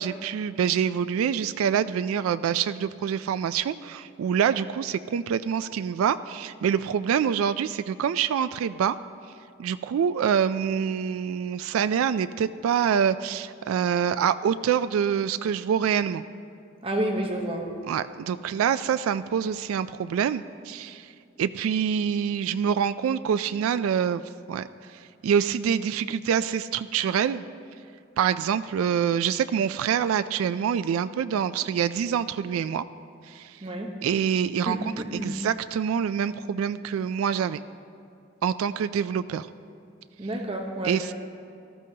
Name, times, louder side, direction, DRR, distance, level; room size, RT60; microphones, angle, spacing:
voice 1, 0.0-9.0 9.6-16.2 17.9-21.1 21.4-24.2 24.5-24.7 25.2-27.4 28.2-32.8 33.3-33.6 34.0-37.6 38.4-39.5 40.8-41.1, right 8 dB, 90° right, 13 dB, 0.3 m, -26 dB
voice 2, 16.8-17.7 33.6-33.9 34.7-35.3 40.2-41.0, right 1 dB, 25° right, 1 dB, 0.9 m, -29 dB
18.0 x 13.0 x 2.8 m, 2.5 s
head